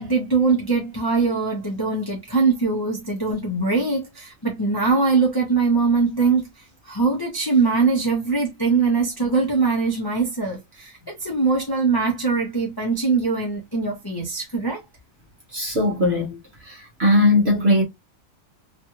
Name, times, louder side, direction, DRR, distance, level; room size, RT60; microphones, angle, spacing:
voice 1, 0.0-6.5 6.8-14.8, right 4 dB, 20° left, 0.8 m, -22 dB
voice 2, 15.5-16.4 16.6-17.8, left 1 dB, 55° right, 1.2 m, -19 dB
3.0 x 2.5 x 2.8 m
omnidirectional pair, 1.4 m